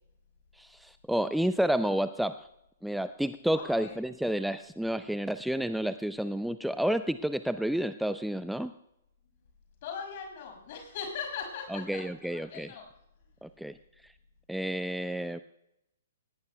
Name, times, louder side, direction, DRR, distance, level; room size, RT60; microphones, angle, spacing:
voice 1, 0.6-2.5 2.8-8.7 11.7-12.7 13.4-13.8 14.0-14.1 14.5-15.4, right 1 dB, ahead, 12 dB, 0.4 m, -30 dB
voice 2, 3.5-4.0 7.5-7.7 9.8-12.9, left 6 dB, 45° left, 2 dB, 6.1 m, -40 dB
19.0 x 18.0 x 2.3 m, 0.83 s
figure-of-eight pair, 120°, 0 cm